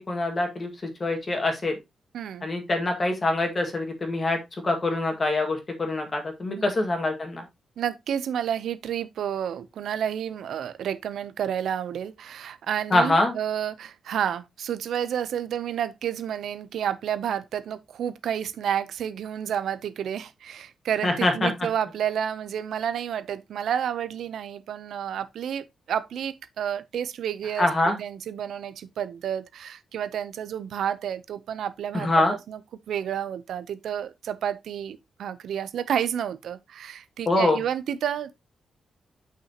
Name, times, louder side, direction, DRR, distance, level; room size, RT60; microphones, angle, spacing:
voice 1, 0.0-1.7 2.4-7.4 12.9-13.3 21.0-21.5 27.6-28.0 31.9-32.3 37.3-37.6, left 2 dB, 25° left, 1.9 m, -24 dB
voice 2, 2.1-2.5 6.6-6.7 7.8-27.7 28.0-32.6 32.9-38.3, right 9 dB, 80° right, 0.6 m, -30 dB
8.1 x 5.9 x 2.9 m
wide cardioid pair, 175°, 0 cm